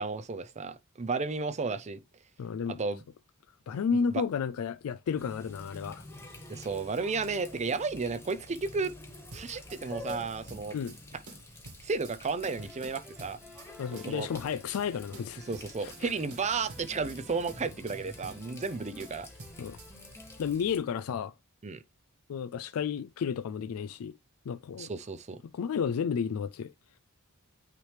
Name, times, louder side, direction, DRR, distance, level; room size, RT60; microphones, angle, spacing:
voice 1, 0.0-2.0 2.8-3.0 4.1-4.2 6.5-8.9 9.3-10.8 11.8-13.4 13.9-14.3 15.5-19.3 21.6-21.8 24.8-25.4, right 4 dB, 30° right, 0.5 m, -33 dB
voice 2, 2.4-2.8 3.7-6.0 10.7-10.9 13.8-15.5 15.8-16.1 19.6-19.8 20.4-21.3 22.3-24.1 24.5-24.9 25.5-26.7, left 6 dB, 75° left, 0.3 m, -32 dB
Water tap faucet, 5.2-20.8, left 2 dB, 10° left, 1.4 m, -49 dB
sound 1, 9.3-9.8 10.1-11.0 11.3-12.2 12.4-13.7 14.0-14.9 15.1-16.0 16.3-17.2 17.5-18.7 19.0-19.9, right 2 dB, 85° right, 1.9 m, -49 dB
sound 2, 12.4-20.4, left 1 dB, 5° right, 0.9 m, -52 dB
9.0 x 3.2 x 3.3 m
head